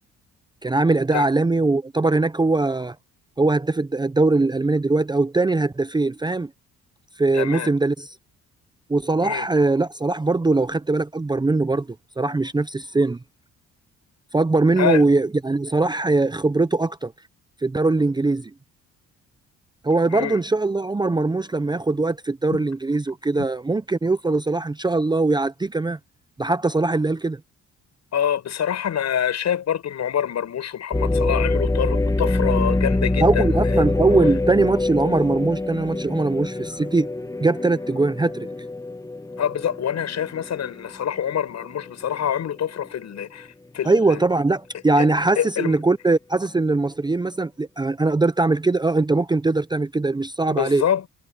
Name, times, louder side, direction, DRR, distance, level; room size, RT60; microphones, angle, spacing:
voice 1, 0.6-2.9 3.4-6.5 7.2-8.1 8.9-11.9 12.2-13.2 14.3-17.1 17.6-18.5 19.8-26.0 26.4-27.4 33.2-37.1 37.4-38.5 43.8-50.8, right 3 dB, 15° right, 0.7 m, -21 dB
voice 2, 7.3-7.7 9.2-9.5 14.8-15.0 20.1-20.4 22.5-22.6 28.1-33.8 39.4-43.5 43.7-44.2 45.0-45.1 45.4-45.8 50.5-51.1, left 9 dB, 60° left, 7.3 m, -26 dB
sound 1, 30.9-40.9 41.4-41.5 42.1-42.5, left 2 dB, 10° left, 1.3 m, -24 dB
cardioid pair, 90°, 30 cm